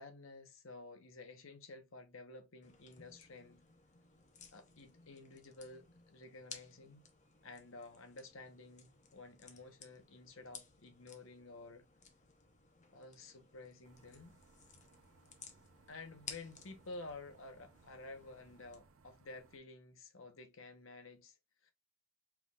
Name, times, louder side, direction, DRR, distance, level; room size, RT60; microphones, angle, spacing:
voice 1, 0.0-3.6 4.5-7.0 7.4-11.9 12.9-14.4 15.9-21.4 21.6-21.7, left 3 dB, 65° left, 1.0 m, -52 dB
sound 1, 2.6-18.8, left 6 dB, 35° left, 0.8 m, -57 dB
sound 2, 13.8-19.6, right 3 dB, 70° right, 0.6 m, -66 dB
4.7 x 3.7 x 2.4 m
head